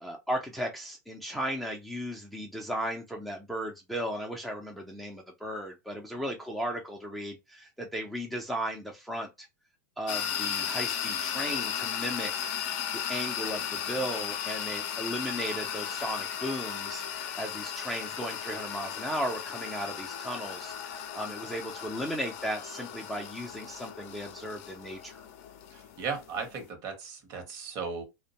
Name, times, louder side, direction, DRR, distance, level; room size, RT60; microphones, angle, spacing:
voice 1, 0.0-9.5 10.0-12.5 12.9-25.2, equal, ahead, 0.5 m, -36 dB
sound 1, 10.1-26.7, left 9 dB, 50° left, 0.5 m, -36 dB
voice 2, 25.7-28.0, right 5 dB, 40° right, 1.0 m, -36 dB
2.5 x 2.2 x 2.8 m
hypercardioid pair, 105°, 10 cm